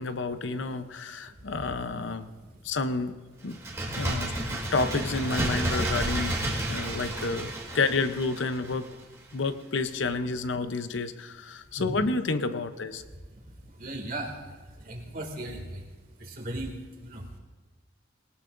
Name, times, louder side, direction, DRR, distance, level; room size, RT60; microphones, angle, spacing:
voice 1, 0.0-2.3 2.6-3.1 3.4-3.6 4.0-6.4 6.7-8.9 9.3-13.0, left 3 dB, 75° left, 10 dB, 0.7 m, -30 dB
voice 2, 1.5-1.9 2.4-2.5 11.8-12.0 13.3-13.4 13.8-15.8 16.2-16.7 17.0-17.2, right 1 dB, 45° right, 2 dB, 2.2 m, -37 dB
Bird, 3.5-9.0 9.3-9.4, right 1 dB, 15° right, 1.6 m, -31 dB
20.0 x 18.5 x 2.6 m, 1.3 s
head